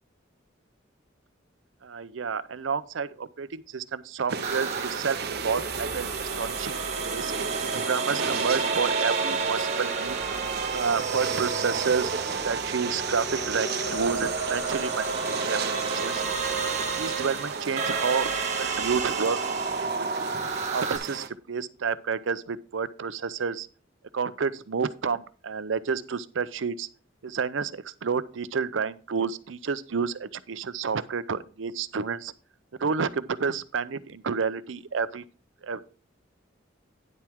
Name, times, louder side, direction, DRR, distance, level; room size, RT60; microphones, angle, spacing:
voice 1, 1.8-6.8 7.0-7.4 7.7-10.2 10.7-16.2 17.0-18.3 18.6-19.4 19.8-20.3 20.7-23.7 24.1-26.9 27.2-32.3 32.8-35.2 35.6-35.8, right 5 dB, 80° right, 16 dB, 0.6 m, -30 dB
sound 1, 4.3-21.3, right 5 dB, 55° right, 0.9 m, -35 dB
sound 2, 4.4-21.0, right 4 dB, 35° right, 1.4 m, -30 dB
9.9 x 7.5 x 3.6 m, 0.38 s
head